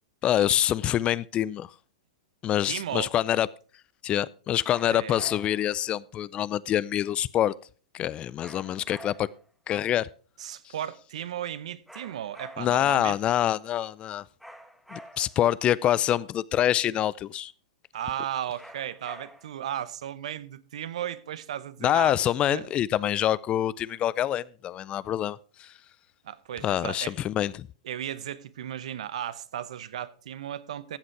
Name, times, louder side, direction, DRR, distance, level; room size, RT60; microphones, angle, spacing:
voice 1, 0.2-1.7 2.4-3.5 4.0-7.5 7.9-9.3 9.7-10.1 10.7-10.8 12.6-14.2 14.9-17.5 21.8-25.7 26.6-27.7, left 11 dB, 30° left, 0.4 m, -26 dB
voice 2, 2.7-3.1 4.9-5.3 10.4-13.2 17.9-22.2 22.5-22.7 26.2-27.1 27.8-31.0, right 10 dB, 75° right, 0.8 m, -35 dB
sound 1, 4.7-5.7 8.4-9.5 11.9-12.9 14.4-15.5 18.6-19.6, equal, ahead, 1.4 m, -48 dB
14.5 x 7.6 x 4.6 m
hypercardioid pair, 115°, 4 cm